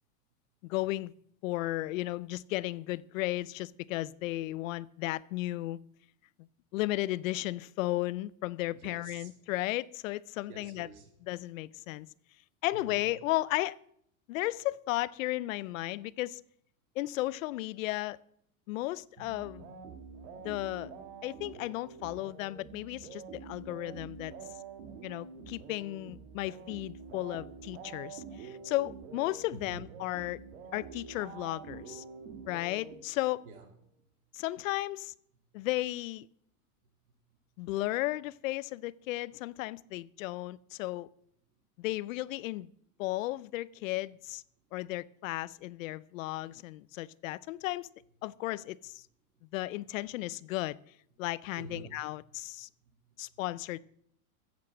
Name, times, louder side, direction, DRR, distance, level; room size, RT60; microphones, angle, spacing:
voice 1, 0.6-1.1 1.4-5.8 6.7-10.9 11.3-12.1 12.6-13.8 14.3-16.4 17.0-18.2 18.7-19.7 20.4-20.9 21.2-24.3 25.0-30.4 30.7-32.0 32.5-33.4 34.3-35.1 35.5-36.3 37.6-41.1 41.8-42.7 43.0-44.4 44.7-47.9 48.2-49.1 49.5-50.8 51.2-52.7 53.2-53.8, left 17 dB, 65° left, 0.6 m, -34 dB
voice 2, 8.7-9.3 10.5-11.1 12.7-13.1 20.3-20.4 29.5-30.1 33.4-33.7 34.1-34.2 35.6-35.7 37.1-37.7 44.6-44.7 49.3-49.5 49.9-50.0 51.6-53.4, right 4 dB, 75° right, 3.6 m, -50 dB
sound 1, 19.2-33.5, right 5 dB, 55° right, 2.0 m, -47 dB
14.5 x 8.4 x 6.2 m
supercardioid pair, 170°, 43 cm